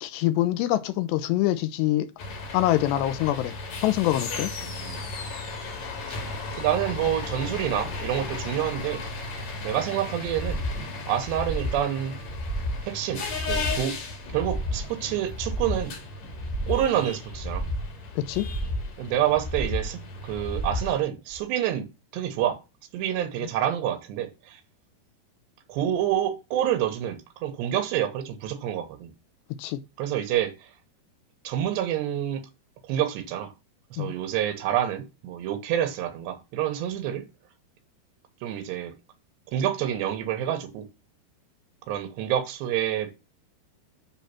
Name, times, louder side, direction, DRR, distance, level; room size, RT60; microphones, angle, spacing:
voice 1, 0.0-2.1 2.5-4.5 18.2-18.5 29.6-29.8 34.0-34.1, left 14 dB, 85° left, 2.9 m, -25 dB
sound 1, 2.2-21.0, left 3 dB, 55° left, 2.2 m, -36 dB
voice 2, 4.6-5.0 6.6-9.0 9.6-10.6 11.1-12.2 12.9-14.0 14.3-16.0 16.7-17.6 19.0-21.9 22.1-22.6 22.9-24.6 25.7-29.1 30.0-30.7 31.5-32.4 32.9-33.5 33.9-37.3 38.4-38.9 39.5-40.9 41.9-43.1, right 11 dB, 85° right, 3.4 m, -28 dB
sound 2, 10.2-10.8 11.2-11.8 12.2-12.8 13.2-13.8 14.2-14.8 15.3-15.8 16.3-16.9 17.3-17.9 18.3-18.9 19.3-19.9 20.3-20.9 21.3-21.4, equal, 55° right, 2.0 m, -31 dB
9.2 x 3.4 x 5.7 m
omnidirectional pair, 4.9 m